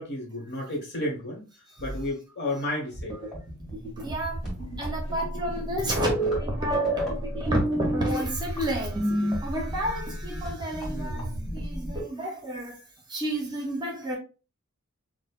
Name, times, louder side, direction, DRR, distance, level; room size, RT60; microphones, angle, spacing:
voice 1, 0.0-1.4 1.8-3.2 10.9-11.6, left 1 dB, 50° left, 1.3 m, -33 dB
sound 1, 2.9-12.0, right 1 dB, ahead, 1.5 m, -30 dB
voice 2, 4.0-4.5 4.8-12.8 13.1-14.2, right 1 dB, 20° right, 0.7 m, -31 dB
5.3 x 2.1 x 2.4 m
head